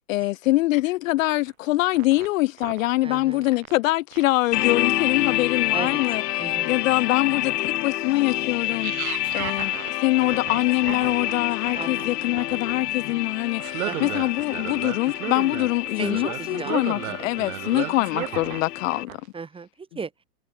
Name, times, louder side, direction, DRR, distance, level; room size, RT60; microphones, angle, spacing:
voice 1, 0.1-6.2 6.6-9.7 10.0-19.1, left 18 dB, 55° left, 1.2 m, -24 dB
sound 1, 1.5-1.7 1.9-3.8 4.1-4.5 4.9-5.0 5.7-5.8 6.4-6.7 7.4-7.5 8.7-18.6 18.9-19.3, right 16 dB, 65° right, 2.1 m, -35 dB
voice 2, 3.0-3.5 5.7-6.0 6.4-6.7 7.0-7.1 11.8-12.3 13.8-14.2 16.0-16.9 17.2-17.5 19.3-20.2, right 5 dB, 10° right, 2.6 m, -36 dB
sound 2, 4.5-19.0, left 15 dB, 90° left, 0.7 m, -28 dB
hypercardioid pair, 140°, 46 cm